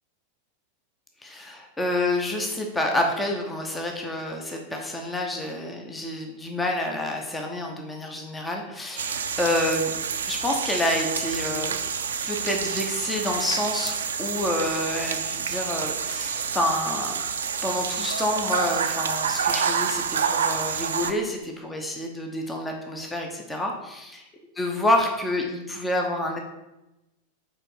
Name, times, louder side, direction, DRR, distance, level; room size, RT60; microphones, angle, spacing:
voice 1, 1.2-9.9 10.3-11.8 12.2-17.1 17.6-24.2 24.5-26.4, left 1 dB, 10° left, 2 dB, 0.9 m, -28 dB
sound 1, 9.0-21.1, right 7 dB, 65° right, 0.5 m, -28 dB
5.5 x 4.4 x 5.6 m, 0.98 s
figure-of-eight pair, 90°, 0 cm